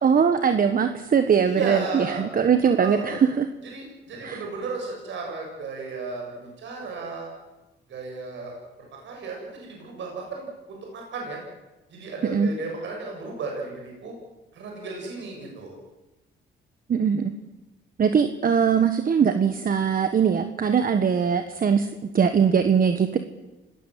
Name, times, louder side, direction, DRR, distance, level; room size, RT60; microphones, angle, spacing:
voice 1, 0.0-3.5 4.2-4.4 12.3-12.5 16.9-17.3 18.0-23.2, right 7 dB, 45° right, 9 dB, 1.5 m, -21 dB
voice 2, 1.4-2.2 2.8-3.2 3.7-7.3 7.9-8.5 8.9-11.4 11.9-14.1 14.5-15.8, right 3 dB, 70° right, 0 dB, 7.4 m, -34 dB
28.0 x 19.0 x 7.6 m, 1.1 s
cardioid pair, 90°, 20 cm